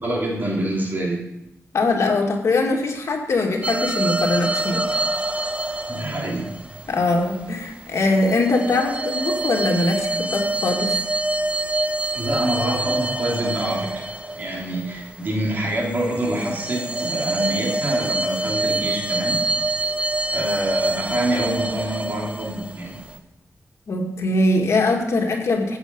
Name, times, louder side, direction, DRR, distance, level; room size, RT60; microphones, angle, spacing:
voice 1, 0.0-1.2 5.9-6.5 12.1-14.1 14.4-19.4 20.3-23.0, right 1 dB, 40° right, -2 dB, 3.1 m, -26 dB
voice 2, 1.7-5.0 6.9-11.0 23.9-25.8, left 2 dB, 70° left, 1 dB, 2.2 m, -22 dB
sound 1, 3.6-7.4 7.9-15.4 15.9-23.2, right 2 dB, 25° right, 1.0 m, -26 dB
14.5 x 8.4 x 5.4 m, 0.84 s
wide cardioid pair, 130°, 5 cm